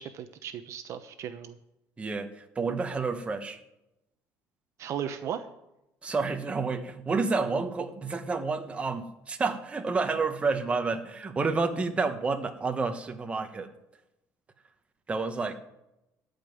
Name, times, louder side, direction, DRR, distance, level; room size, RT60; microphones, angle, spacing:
voice 1, 0.0-1.6 4.8-5.5, right 9 dB, 50° right, 9 dB, 0.9 m, -36 dB
voice 2, 2.0-2.3 2.5-3.6 6.0-13.7 15.1-15.6, right 4 dB, 20° right, 6 dB, 1.2 m, -29 dB
14.0 x 5.3 x 9.3 m, 0.88 s
cardioid pair, 145°, 7 cm